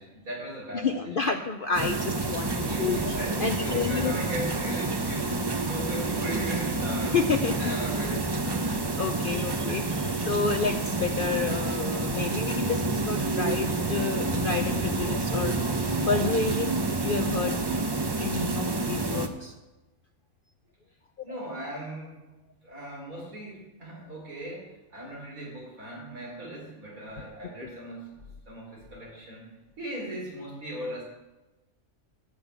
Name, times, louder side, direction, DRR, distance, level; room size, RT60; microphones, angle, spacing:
voice 1, 0.0-1.3 2.6-5.3 5.5-7.2 7.6-8.5 9.7-9.8 21.2-22.2 22.6-28.2 28.5-31.0, right 1 dB, 70° right, -3 dB, 4.4 m, -38 dB
voice 2, 0.7-2.5 2.8-4.2 7.1-7.7 8.6-8.7 9.0-15.6 16.1-17.6 18.2-19.5 21.3-21.4, left 5 dB, 55° left, 6 dB, 0.6 m, -30 dB
sound 1, 1.7-19.3, right 2 dB, 30° right, 0.5 m, -28 dB
12.5 x 5.7 x 8.2 m, 1.1 s
omnidirectional pair, 1.5 m